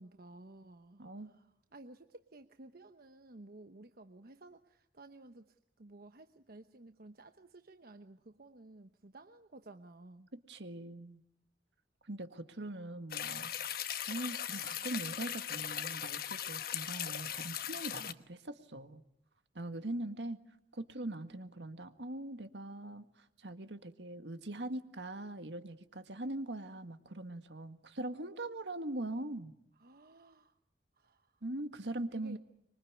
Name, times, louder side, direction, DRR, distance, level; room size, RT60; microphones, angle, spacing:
voice 1, 0.0-1.5 1.7-10.3 12.7-12.9 18.0-18.1 21.0-21.2 29.8-30.5 31.0-31.3 32.1-32.4, right 2 dB, 55° right, 7 dB, 1.0 m, -54 dB
voice 2, 1.0-1.3 10.3-11.2 12.0-13.5 14.1-19.0 19.6-20.4 20.7-29.5 31.4-32.4, right 1 dB, 80° right, 9 dB, 1.9 m, -42 dB
sound 1, 13.1-18.1, left 10 dB, 55° left, 1.2 m, -39 dB
25.5 x 24.0 x 9.7 m, 0.77 s
head